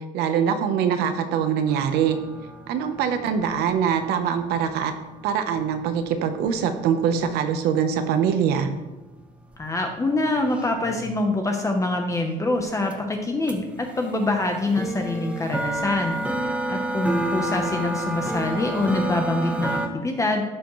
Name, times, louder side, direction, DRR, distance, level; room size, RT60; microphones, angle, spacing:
voice 1, 0.1-2.2 2.7-4.9 5.2-8.7, right 7 dB, 90° right, 8 dB, 1.0 m, -23 dB
sound 1, 1.7-7.3 8.9-9.0 9.5-9.6 9.8-11.3 12.6-12.7 12.9-13.0 13.5-19.9, right 1 dB, 5° right, 0.9 m, -30 dB
voice 2, 9.6-16.1 16.7-20.4, left 2 dB, 20° left, 3 dB, 0.9 m, -25 dB
12.0 x 7.0 x 3.2 m, 1.1 s
cardioid pair, 125°, 16 cm